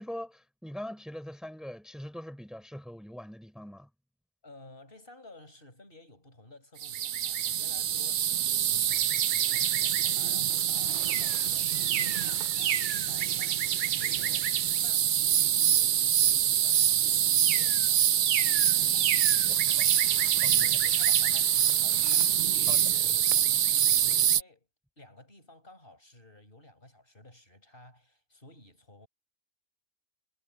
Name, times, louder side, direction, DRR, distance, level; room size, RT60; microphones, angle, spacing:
voice 1, 0.0-3.9 19.5-19.9 20.2-20.7 22.7-22.8, equal, ahead, 4.0 m, -42 dB
voice 2, 4.4-19.2 20.5-24.7 25.0-29.1, left 1 dB, 40° left, 6.8 m, -54 dB
sound 1, 6.8-24.4, right 10 dB, 60° right, 0.5 m, -25 dB
omnidirectional pair, 1.4 m